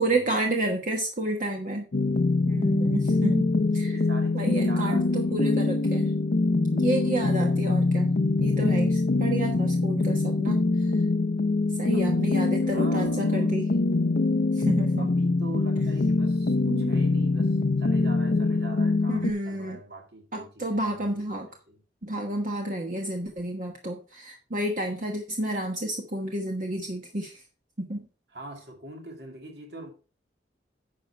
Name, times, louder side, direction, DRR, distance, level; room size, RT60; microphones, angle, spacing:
voice 1, 0.0-1.8 2.4-4.0 4.3-6.1 6.7-10.9 11.8-13.7 14.5-15.1 16.7-16.9 19.1-19.8 20.3-21.5 22.0-27.4 27.8-28.1, right 1 dB, 45° right, 1.2 m, -30 dB
sound 1, 1.9-19.3, left 3 dB, 60° left, 0.6 m, -24 dB
voice 2, 3.8-5.4 11.9-13.5 15.0-21.8 28.3-29.9, right 1 dB, 60° right, 2.4 m, -43 dB
10.0 x 5.3 x 4.4 m
head